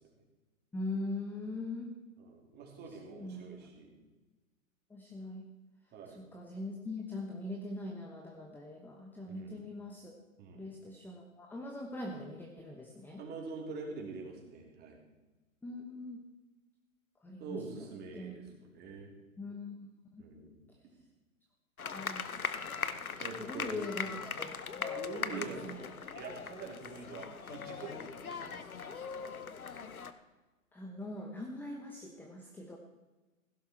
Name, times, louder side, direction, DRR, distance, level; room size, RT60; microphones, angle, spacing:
voice 1, 0.7-2.0 3.1-3.7 4.9-5.4 6.1-10.1 10.5-13.2 15.6-16.2 17.2-17.6 18.1-18.4 19.4-19.9 20.1-20.3 21.9-22.2 23.4-25.0 25.3-26.0 30.7-32.8, left 2 dB, 5° left, 2 dB, 0.9 m, -42 dB
voice 2, 2.2-4.0 5.9-6.2 9.3-9.5 10.4-10.6 13.2-15.0 17.4-18.4 18.7-19.1 20.2-20.6 23.2-23.8 24.9-25.6 26.1-28.8, right 4 dB, 25° right, 1 dB, 3.2 m, -45 dB
sound 1, 21.8-30.1, left 6 dB, 90° left, 1.0 m, -40 dB
16.0 x 11.5 x 4.4 m, 1.2 s
hypercardioid pair, 125°, 41 cm